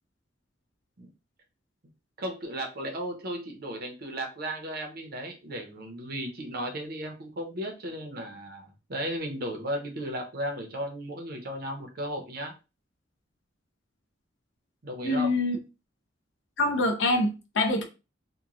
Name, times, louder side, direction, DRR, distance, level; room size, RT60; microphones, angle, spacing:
voice 1, 2.2-12.5 14.8-15.4, equal, 55° right, 0.7 m, -35 dB
voice 2, 15.0-15.6 16.6-17.8, left 2 dB, 70° left, 0.6 m, -25 dB
2.9 x 2.1 x 2.4 m
head